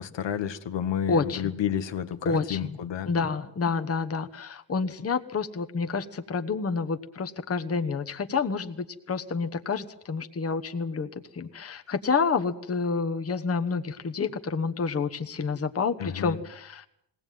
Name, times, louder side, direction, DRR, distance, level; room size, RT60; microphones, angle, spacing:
voice 1, 0.0-3.1 16.0-16.4, left 9 dB, 80° left, 1.4 m, -31 dB
voice 2, 1.1-1.4 2.2-2.8 3.0-16.9, left 5 dB, 35° left, 1.2 m, -29 dB
21.5 x 18.0 x 9.3 m
wide cardioid pair, 165°, 43 cm